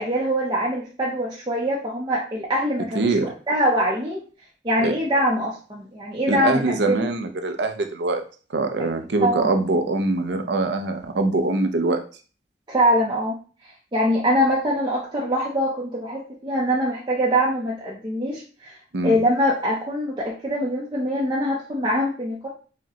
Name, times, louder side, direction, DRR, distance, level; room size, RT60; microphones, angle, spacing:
voice 1, 0.0-3.1 3.5-4.2 4.6-7.0 9.2-9.5 12.7-13.4 13.9-18.8 19.0-22.5, equal, 25° right, -4 dB, 0.6 m, -23 dB
voice 2, 2.9-3.3 4.8-4.9 6.3-8.2 8.5-12.0 18.9-19.2, right 2 dB, 80° right, 6 dB, 0.6 m, -23 dB
4.8 x 2.1 x 2.8 m, 0.38 s
head